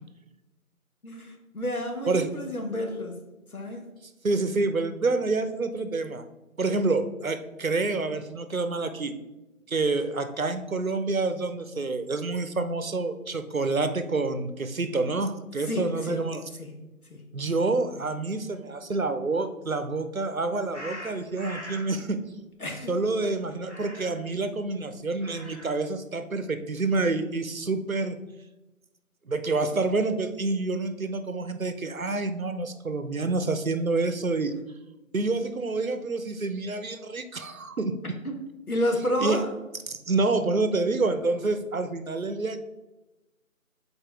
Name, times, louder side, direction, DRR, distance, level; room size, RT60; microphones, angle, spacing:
voice 1, 1.0-3.9 15.7-16.3 16.6-16.8 17.1-17.2 22.6-22.9 38.2-38.4 38.7-39.5, equal, 85° left, 3 dB, 1.4 m, -30 dB
voice 2, 4.2-6.2 6.6-9.1 9.7-16.4 17.3-22.2 22.9-28.2 29.3-34.6 35.1-38.2 39.2-39.4 39.9-42.6, right 3 dB, 70° right, 10 dB, 0.7 m, -28 dB
sound 1, 20.7-21.9 23.6-24.3 25.1-25.9, equal, 55° left, 1.6 m, -42 dB
6.9 x 4.2 x 3.3 m, 1.0 s
figure-of-eight pair, 175°, 43 cm